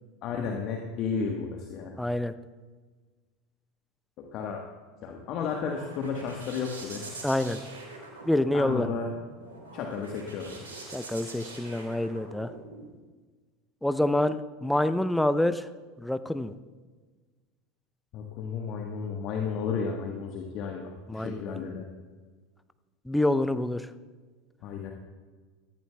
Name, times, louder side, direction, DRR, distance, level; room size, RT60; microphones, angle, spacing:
voice 1, 0.2-1.9 4.2-4.6 5.0-7.0 8.5-9.1 9.7-10.7 18.1-21.8 24.6-24.9, left 6 dB, 45° left, 1 dB, 1.3 m, -33 dB
voice 2, 2.0-2.3 7.2-7.6 8.3-8.9 10.9-12.5 13.8-15.7 16.0-16.5 21.1-21.6 23.1-23.9, left 1 dB, 5° left, 12 dB, 0.6 m, -27 dB
sound 1, 4.9-12.9, right 3 dB, 75° right, 3.8 m, -44 dB
18.5 x 14.0 x 2.3 m, 1.4 s
figure-of-eight pair, 75°, 0 cm